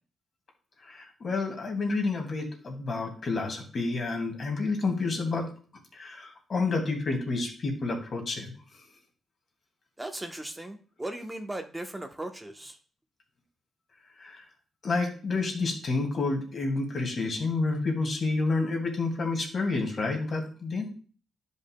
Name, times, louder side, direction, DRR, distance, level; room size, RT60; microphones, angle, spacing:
voice 1, 0.9-5.5 5.9-8.5 14.2-14.4 14.8-20.9, left 3 dB, 55° left, 1 dB, 2.2 m, -29 dB
voice 2, 10.0-12.8, right 1 dB, 15° right, 5 dB, 0.9 m, -37 dB
10.5 x 5.3 x 2.2 m, 0.39 s
cardioid pair, 70°, 0 cm